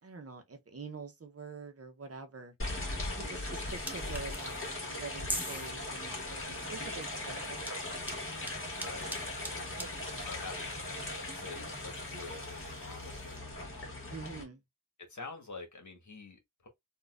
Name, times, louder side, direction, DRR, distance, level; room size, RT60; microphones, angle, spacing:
voice 1, 0.0-2.5 3.2-7.9 9.8-9.9 14.1-14.6, right 4 dB, 45° right, 0.8 m, -46 dB
sound 1, 2.6-14.4, left 2 dB, 40° left, 1.6 m, -39 dB
sound 2, 3.7-13.4, equal, 5° right, 0.8 m, -46 dB
voice 2, 8.7-9.2 10.1-13.9 15.1-16.7, left 3 dB, 65° left, 1.2 m, -47 dB
3.9 x 2.4 x 2.4 m
wide cardioid pair, 75°, 32 cm